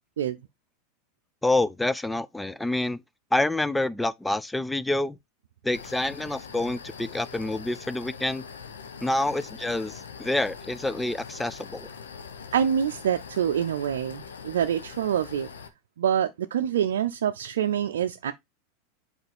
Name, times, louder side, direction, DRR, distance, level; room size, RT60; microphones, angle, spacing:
voice 1, 1.4-3.0 3.3-5.2 5.6-8.4 9.0-11.9, left 2 dB, 5° left, 0.5 m, -27 dB
sound 1, 5.7-15.7, left 6 dB, 90° left, 1.1 m, -43 dB
voice 2, 12.5-15.5 16.0-18.3, right 9 dB, 80° right, 0.5 m, -26 dB
8.0 x 4.6 x 3.4 m
hypercardioid pair, 100°, 0 cm